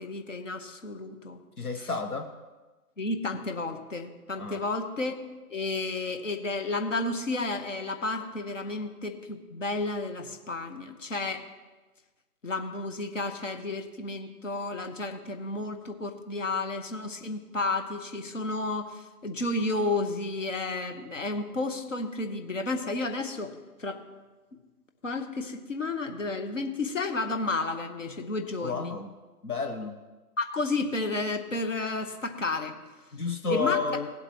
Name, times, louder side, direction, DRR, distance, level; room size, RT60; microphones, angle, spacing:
voice 1, 0.0-1.4 1.8-1.9 3.0-5.1 5.5-11.4 12.4-24.0 25.0-28.9 30.4-32.7 33.5-33.8, left 2 dB, 55° left, 6 dB, 1.2 m, -32 dB
voice 2, 1.6-2.3 4.4-4.6 28.6-29.1 29.4-29.9 33.1-34.1, left 4 dB, 70° left, 5 dB, 1.0 m, -31 dB
17.5 x 7.8 x 3.0 m, 1.2 s
figure-of-eight pair, 145°, 46 cm